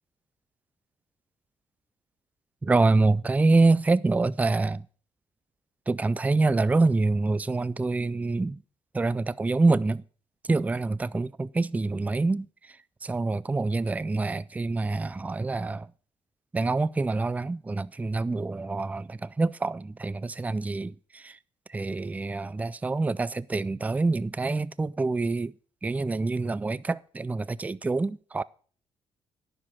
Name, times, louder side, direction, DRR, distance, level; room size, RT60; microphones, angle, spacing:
voice 1, 2.6-4.9 5.9-8.6 8.9-10.0 10.5-12.5 13.0-15.9 16.5-21.4 21.7-25.5 25.8-28.4, right 3 dB, 15° right, 0.4 m, -26 dB
10.0 x 6.6 x 6.0 m
cardioid pair, 95°, 11 cm